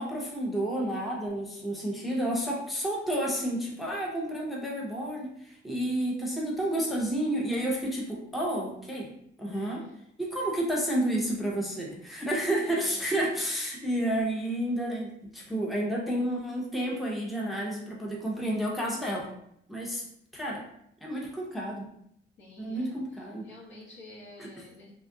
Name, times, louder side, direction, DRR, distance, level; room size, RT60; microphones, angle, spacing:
voice 1, 0.0-9.1 9.4-9.8 10.2-19.3 19.7-20.0 20.3-20.6 21.0-21.9 22.6-23.5 24.4-24.7, right 1 dB, ahead, -3 dB, 0.6 m, -30 dB
voice 2, 9.4-9.9 12.6-13.3 22.4-24.9, left 2 dB, 70° left, -5 dB, 1.1 m, -50 dB
2.6 x 2.3 x 2.5 m, 0.72 s
cardioid pair, 90°, 20 cm